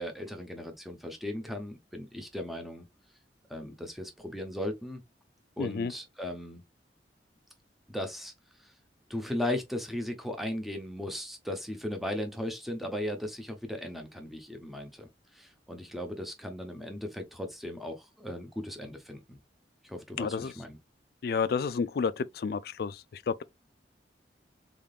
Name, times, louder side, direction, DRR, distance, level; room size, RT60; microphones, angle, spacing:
voice 1, 0.0-2.9 3.5-5.0 5.6-6.6 7.9-8.3 8.6-8.7 9.1-19.4 19.8-20.8, left 1 dB, ahead, 0.8 m, -37 dB
voice 2, 5.6-5.9 20.2-20.5 21.2-23.4, left 5 dB, 60° left, 0.3 m, -31 dB
3.7 x 3.6 x 2.4 m
head